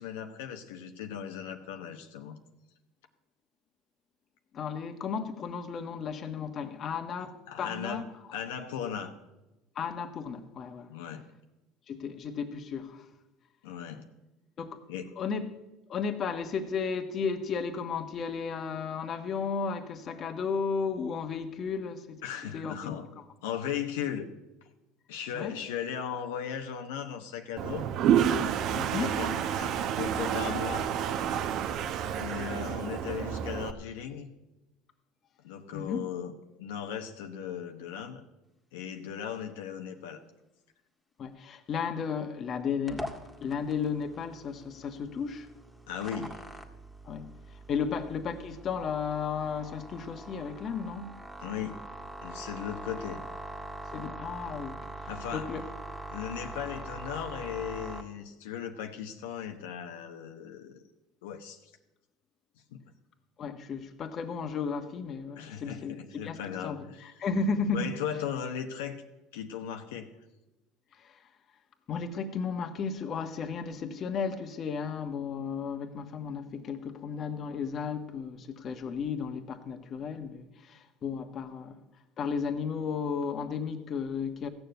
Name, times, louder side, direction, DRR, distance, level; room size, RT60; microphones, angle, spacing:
voice 1, 0.0-2.4 7.5-9.1 10.9-11.3 13.6-14.0 14.9-15.1 22.2-23.1 23.4-24.3 25.1-27.9 28.9-30.9 32.1-34.3 35.4-36.3 36.6-38.2 38.7-40.2 45.9-46.4 47.8-48.0 51.4-51.8 52.2-53.2 55.1-55.5 56.1-60.8 61.2-61.6 62.7-62.8 65.4-67.2 67.7-69.0 69.3-70.1, left 8 dB, 85° left, 1.0 m, -37 dB
voice 2, 4.5-8.0 9.7-10.9 11.9-13.1 14.6-14.8 15.2-15.5 15.9-22.2 22.5-23.2 25.3-25.5 28.7-29.1 35.7-36.0 41.2-43.1 43.4-45.5 47.0-47.3 47.7-51.1 53.9-54.8 55.3-55.6 63.4-66.0 66.2-67.9 71.0-71.2 71.9-81.8 82.2-84.5, left 5 dB, 45° left, 1.4 m, -34 dB
Toilet flush, 27.6-33.7, right 9 dB, 60° right, 0.9 m, -29 dB
sound 1, 42.9-58.0, right 1 dB, 5° right, 1.9 m, -43 dB
15.0 x 7.0 x 8.0 m
supercardioid pair, 85°, 0 cm